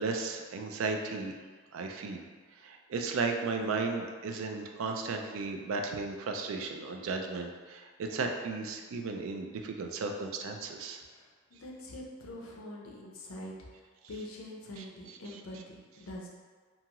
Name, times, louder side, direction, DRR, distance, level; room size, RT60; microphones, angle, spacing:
voice 1, 0.0-1.4 1.7-2.2 2.6-11.0 14.8-15.4, right 4 dB, 65° right, 3 dB, 0.3 m, -35 dB
voice 2, 11.0-16.3, left 1 dB, 70° left, -2 dB, 0.5 m, -45 dB
2.8 x 2.3 x 2.9 m, 1.5 s
head